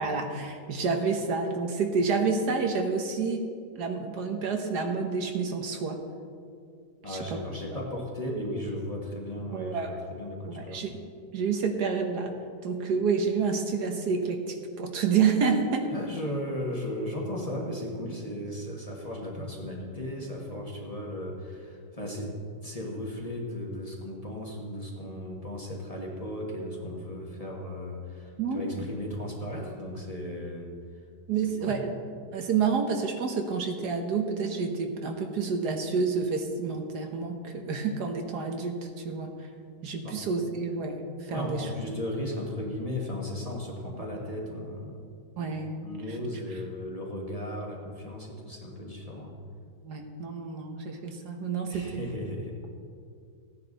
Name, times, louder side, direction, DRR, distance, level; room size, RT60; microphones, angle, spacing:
voice 1, 0.0-3.4 3.8-6.0 7.1-7.4 9.5-10.0 10.5-11.0 11.3-12.3 12.6-15.9 28.4-28.9 31.3-31.9 32.3-39.3 39.8-41.7 45.4-46.1 49.8-52.0, right 5 dB, 70° right, 4 dB, 1.5 m, -29 dB
voice 2, 7.0-10.8 15.9-22.3 22.6-30.7 31.5-31.8 40.0-40.2 41.3-45.0 45.4-45.5 45.8-49.3 51.7-52.6, left 1 dB, 20° left, -3 dB, 1.6 m, -36 dB
15.5 x 9.9 x 4.0 m, 2.3 s
omnidirectional pair, 1.9 m